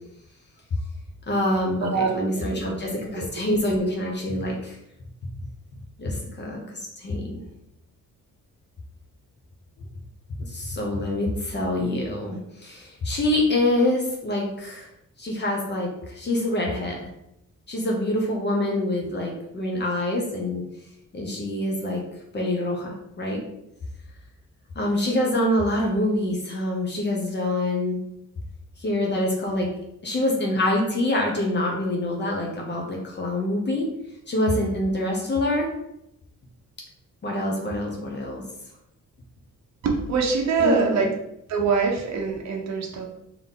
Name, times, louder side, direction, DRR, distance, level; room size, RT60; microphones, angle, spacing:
voice 1, 1.3-4.8 6.0-7.4 10.5-14.9 15.2-17.1 17.7-20.6 21.1-22.0 22.3-23.4 24.8-28.0 28.8-29.7 30.0-33.9 34.3-35.7 37.2-38.4 40.6-41.1, left 1 dB, 35° left, -1 dB, 0.7 m, -25 dB
voice 2, 1.8-2.8 3.2-3.3 39.8-41.1 41.5-43.1, right 5 dB, 60° right, 0 dB, 0.8 m, -24 dB
3.6 x 2.9 x 3.9 m, 0.81 s
wide cardioid pair, 175°, 31 cm